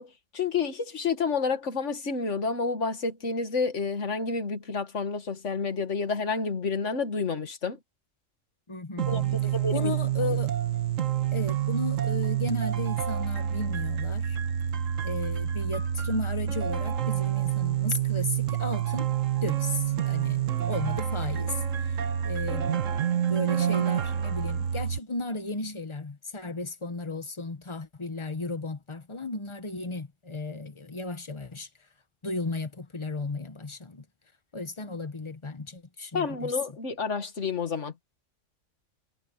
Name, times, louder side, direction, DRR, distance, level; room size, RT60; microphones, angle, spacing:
voice 1, 0.0-7.8 9.1-9.9 36.1-37.9, left 4 dB, 70° left, 2.2 m, -30 dB
voice 2, 8.7-9.5 9.7-10.5 11.3-14.4 15.0-19.1 19.4-21.6 21.9-22.0 22.2-22.8 23.3-31.7 32.2-34.0 34.5-36.5, left 3 dB, 25° left, 1.1 m, -35 dB
sound 1, 9.0-25.0, right 10 dB, 85° right, 1.7 m, -28 dB
omnidirectional pair, 1.3 m